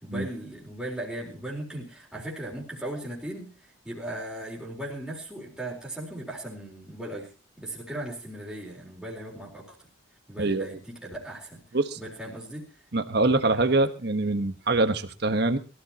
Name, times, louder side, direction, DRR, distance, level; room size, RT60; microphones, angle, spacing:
voice 1, 0.0-9.8 10.3-11.6 12.0-12.7, right 1 dB, 5° right, -3 dB, 4.1 m, -38 dB
voice 2, 10.4-10.8 11.7-12.0 12.9-15.6, right 2 dB, 55° right, 8 dB, 1.3 m, -24 dB
22.5 x 13.5 x 2.9 m, 0.31 s
head